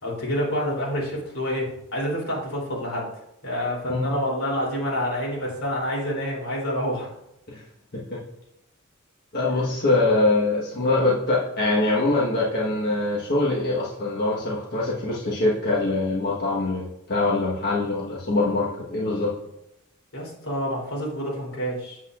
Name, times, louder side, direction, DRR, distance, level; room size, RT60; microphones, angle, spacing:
voice 1, 0.0-3.1 3.4-7.1 20.1-22.0, equal, 85° left, -4 dB, 3.1 m, -28 dB
voice 2, 9.3-19.3, left 2 dB, 55° left, -5 dB, 1.3 m, -23 dB
8.3 x 7.9 x 2.4 m, 0.85 s
head